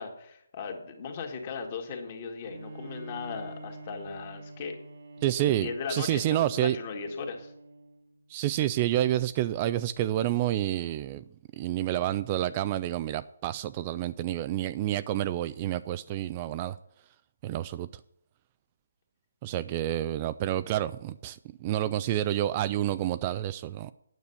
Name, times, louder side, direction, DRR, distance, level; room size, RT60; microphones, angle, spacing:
voice 1, 0.0-4.8 5.6-7.5, left 5 dB, 35° left, 2.0 m, -37 dB
Bowed string instrument, 2.4-8.1, right 2 dB, 65° right, 1.3 m, -46 dB
voice 2, 5.2-6.8 8.3-11.2 11.6-16.8 17.4-17.9 19.4-23.9, right 13 dB, 25° right, 0.3 m, -29 dB
9.4 x 6.8 x 6.9 m
figure-of-eight pair, 150°, 0 cm